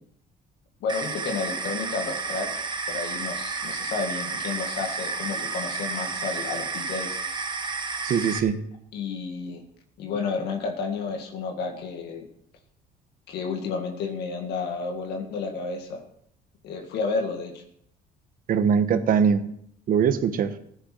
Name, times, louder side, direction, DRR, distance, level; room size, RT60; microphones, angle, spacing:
voice 1, 0.8-2.6 2.9-7.2 8.9-9.6 10.0-12.3 13.3-16.0 16.6-17.6, left 4 dB, 75° left, 3 dB, 2.0 m, -31 dB
sound 1, 0.9-8.4, right 4 dB, 25° right, 1.5 m, -31 dB
voice 2, 8.0-8.6 18.5-19.5 19.9-20.6, right 7 dB, 55° right, 10 dB, 1.2 m, -22 dB
15.0 x 10.5 x 4.5 m, 0.69 s
cardioid pair, 110°, 17 cm